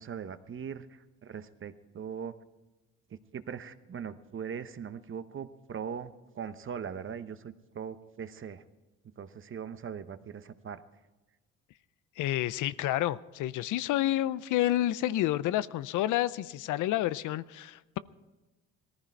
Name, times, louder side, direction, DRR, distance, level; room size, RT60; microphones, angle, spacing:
voice 1, 0.0-2.3 3.3-8.6 9.2-10.8, right 7 dB, 40° right, 12 dB, 0.9 m, -40 dB
voice 2, 12.2-18.0, left 14 dB, 85° left, 17 dB, 0.5 m, -29 dB
19.0 x 14.5 x 4.5 m, 1.1 s
cardioid pair, 90°, 30 cm